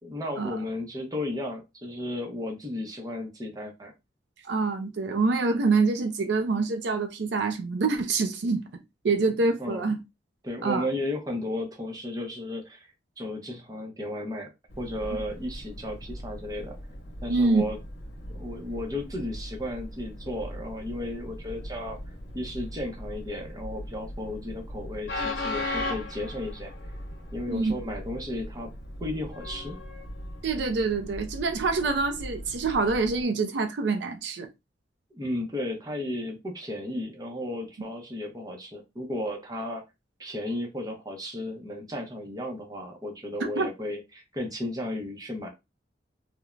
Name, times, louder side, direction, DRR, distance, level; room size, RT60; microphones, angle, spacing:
voice 1, 0.0-3.9 9.6-9.9 10.4-14.5 14.8-16.8 17.2-17.8 18.3-26.7 27.3-28.7 29.0-29.8 35.1-39.8 40.2-45.5, left 1 dB, 20° right, 0.6 m, -34 dB
voice 2, 4.5-10.0 10.6-10.8 17.3-17.6 27.5-27.7 30.4-34.5 43.6-43.7, right 3 dB, 70° right, 0.4 m, -26 dB
Train, 14.7-33.2, left 1 dB, 65° left, 1.0 m, -38 dB
3.1 x 2.0 x 2.4 m
head